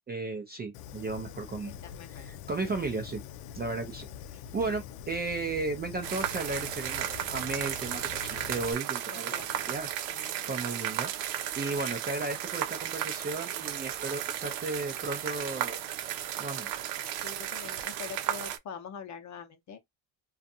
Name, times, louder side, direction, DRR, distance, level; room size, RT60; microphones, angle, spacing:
voice 1, 0.1-1.7 2.1-3.2 3.5-4.1 4.5-9.9 10.5-15.8 16.4-16.7, right 3 dB, 20° right, 0.4 m, -35 dB
Fire, 0.7-8.7, left 9 dB, 80° left, 0.6 m, -44 dB
voice 2, 1.7-2.3 2.6-2.7 4.7-4.8 9.1-10.5 17.2-19.8, left 7 dB, 35° left, 0.7 m, -45 dB
sound 1, 6.0-18.6, right 11 dB, 75° right, 0.7 m, -34 dB
2.5 x 2.4 x 2.6 m
cardioid pair, 115°, 49 cm